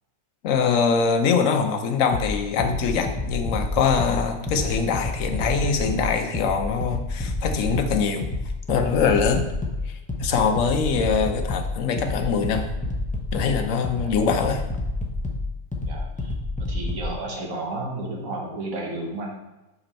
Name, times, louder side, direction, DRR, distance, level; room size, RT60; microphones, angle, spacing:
voice 1, 0.4-8.3 8.7-9.4 9.9-12.7 13.3-14.6, left 5 dB, 65° left, 5 dB, 1.1 m, -23 dB
sound 1, 2.1-17.1, left 2 dB, 10° left, 0.6 m, -29 dB
voice 2, 15.9-16.3 16.7-19.4, right 2 dB, 65° right, 0 dB, 1.6 m, -32 dB
6.1 x 5.6 x 4.3 m, 1.0 s
omnidirectional pair, 1.6 m